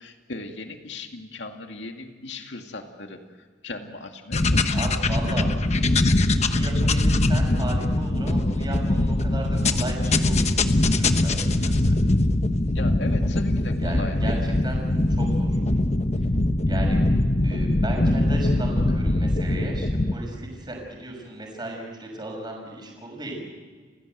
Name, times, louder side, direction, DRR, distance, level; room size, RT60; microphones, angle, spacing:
voice 1, 0.0-5.1 12.7-14.4, left 2 dB, 80° left, 4 dB, 2.2 m, -38 dB
sound 1, 4.3-20.1, left 1 dB, 40° left, 1.1 m, -22 dB
voice 2, 4.7-5.5 6.3-11.9 13.8-14.8 15.1-15.5 16.7-17.0 17.4-23.4, right 1 dB, 25° right, 0 dB, 6.2 m, -35 dB
29.5 x 17.0 x 8.0 m, 1.5 s
head